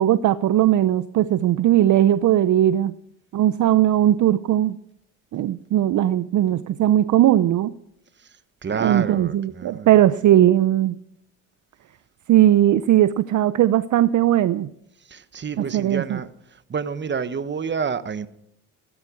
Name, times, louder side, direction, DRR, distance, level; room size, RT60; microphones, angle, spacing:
voice 1, 0.0-2.9 3.3-4.8 5.3-7.7 8.7-11.0 12.3-14.7 15.6-16.2, right 12 dB, 50° right, 0.6 m, -18 dB
voice 2, 8.6-10.0 15.1-16.3 16.7-18.3, right 6 dB, 30° right, 1.2 m, -28 dB
16.0 x 13.0 x 6.3 m
cardioid pair, 95°, 39 cm